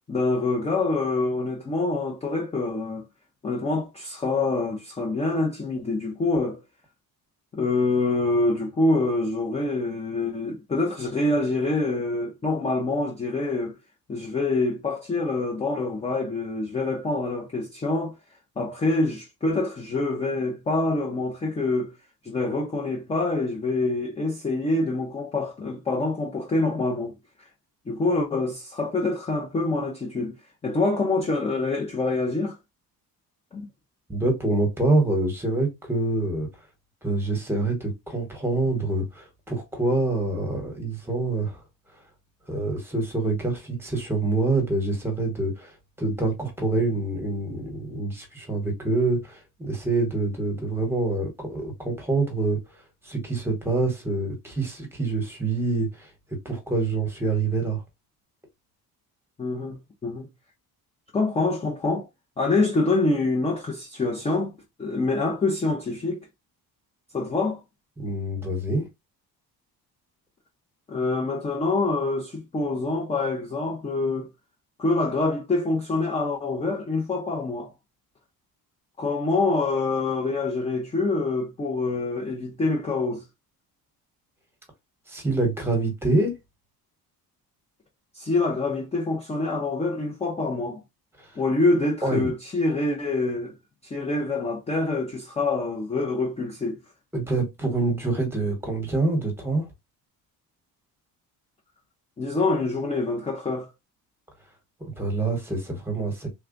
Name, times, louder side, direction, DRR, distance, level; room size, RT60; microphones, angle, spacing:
voice 1, 0.1-3.0 3.4-6.6 7.5-13.8 14.1-18.1 18.6-21.9 22.2-27.2 27.9-30.4 30.6-32.6 33.5-33.7 59.4-60.3 61.1-62.1 62.4-64.5 64.8-66.2 67.1-67.6 70.9-74.3 74.8-77.7 79.0-83.3 88.1-90.8 91.4-93.5 93.8-96.8 102.2-103.7, left 3 dB, 15° left, 0.5 m, -26 dB
voice 2, 34.1-36.5 37.0-41.6 42.5-45.7 46.0-52.6 53.0-56.1 56.4-57.8 68.0-68.8 85.1-86.3 92.0-92.3 97.1-99.6 104.8-106.3, right 2 dB, 5° right, 1.1 m, -26 dB
3.4 x 2.3 x 3.7 m
cardioid pair, 170°, 37 cm